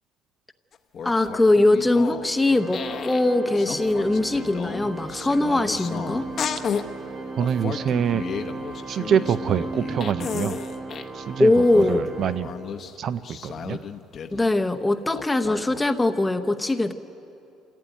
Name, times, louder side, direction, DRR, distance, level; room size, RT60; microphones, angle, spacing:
sound 1, 0.7-2.3 2.7-3.3 3.5-6.9 7.4-11.1 11.6-14.6 15.1-15.8, left 6 dB, 40° left, 0.9 m, -34 dB
voice 1, 1.0-6.2 11.4-12.0 14.3-16.9, left 2 dB, 10° left, 7 dB, 0.8 m, -21 dB
Organ, 2.4-13.0, right 3 dB, 25° right, 1.1 m, -36 dB
voice 2, 7.4-8.2 8.9-10.6 11.1-12.5 13.0-13.8, right 8 dB, 45° right, 12 dB, 0.4 m, -25 dB
28.0 x 15.5 x 9.1 m, 2.8 s
cardioid pair, 160°, 0 cm